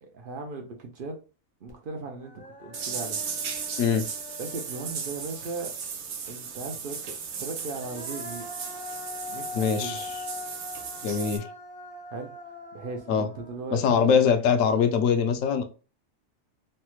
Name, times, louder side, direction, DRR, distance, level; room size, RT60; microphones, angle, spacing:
voice 1, 0.0-1.2 1.6-2.3 2.6-3.2 4.4-5.7 6.3-7.1 7.4-8.5 9.3-10.1 12.1-12.3 12.7-14.2, right 3 dB, 60° right, 0.6 m, -37 dB
Human voice, 1.7-1.8 2.1-5.8 7.5-14.7, left 3 dB, 10° left, 0.5 m, -43 dB
sound 1, 2.7-11.4, right 6 dB, 80° right, 1.1 m, -36 dB
voice 2, 9.5-10.1 11.0-11.5 13.1-13.3 13.7-15.6, left 6 dB, 70° left, 0.9 m, -23 dB
3.2 x 2.0 x 2.9 m
omnidirectional pair, 1.4 m